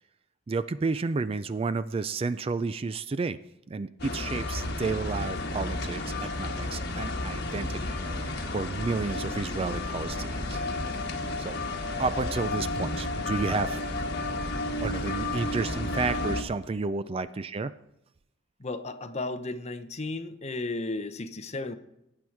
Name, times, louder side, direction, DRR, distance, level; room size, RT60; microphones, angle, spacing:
voice 1, 0.5-3.4 3.7-8.1 8.5-10.6 11.4-11.6 12.0-13.8 14.8-17.7, right 4 dB, 30° right, 14 dB, 0.3 m, -31 dB
sound 1, 4.0-16.4, left 2 dB, 55° left, 1.5 m, -32 dB
voice 2, 18.6-21.7, left 2 dB, 35° left, 10 dB, 0.8 m, -34 dB
18.0 x 8.7 x 4.6 m, 0.87 s
head